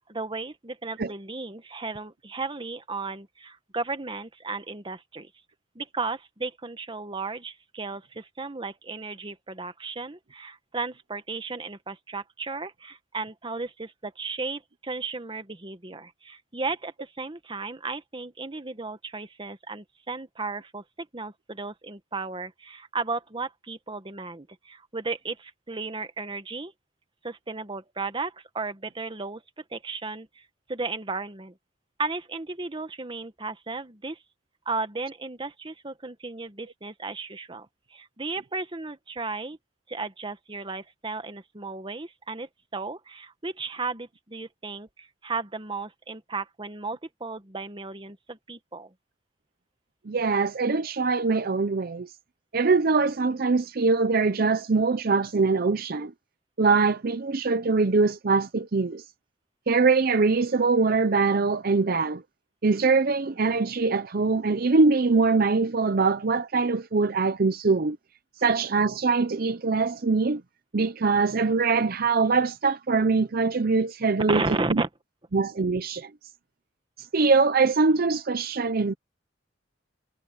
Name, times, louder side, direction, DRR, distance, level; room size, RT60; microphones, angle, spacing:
voice 1, 0.1-5.3 5.7-26.7 27.2-29.4 29.7-30.4 30.7-31.5 32.0-34.2 34.6-39.6 39.9-48.9 74.3-74.9, right 3 dB, 25° right, 1.3 m, -34 dB
voice 2, 50.1-52.1 52.5-56.1 56.6-59.0 59.7-62.2 62.6-68.0 68.4-70.4 70.7-74.4 74.7-74.8 75.3-76.1 77.0-78.9, right 4 dB, 55° right, 0.6 m, -23 dB
head